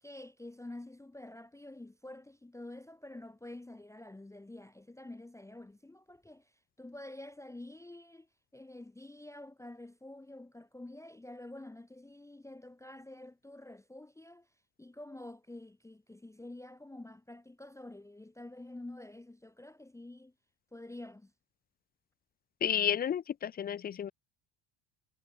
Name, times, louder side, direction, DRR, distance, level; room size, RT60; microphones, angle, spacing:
voice 1, 0.0-6.5 6.8-8.3 8.5-14.5 14.8-20.3 20.7-21.3, left 1 dB, 5° left, 0.8 m, -48 dB
voice 2, 22.6-24.1, left 9 dB, 20° left, 0.3 m, -31 dB
cardioid pair, 105°, 46 cm